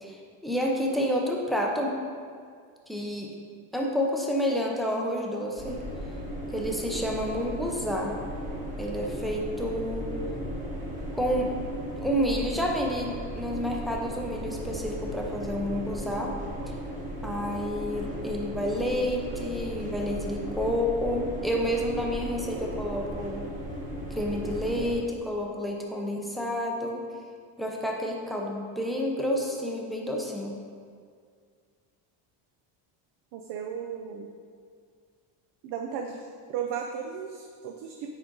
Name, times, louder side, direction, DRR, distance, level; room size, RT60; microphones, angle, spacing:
voice 1, 0.0-2.0 2.9-3.3 3.7-5.8 6.5-8.2 8.8-10.1 11.1-11.5 12.0-16.4 16.7-16.8 17.2-23.4 24.1-27.1 27.6-30.6, equal, ahead, -1 dB, 0.5 m, -29 dB
sound 1, 5.6-24.9, equal, 15° right, 1.4 m, -36 dB
voice 2, 33.3-34.3 35.6-38.1, right 7 dB, 60° right, 3 dB, 0.6 m, -35 dB
9.2 x 3.9 x 3.8 m, 2.1 s
cardioid pair, 150°, 48 cm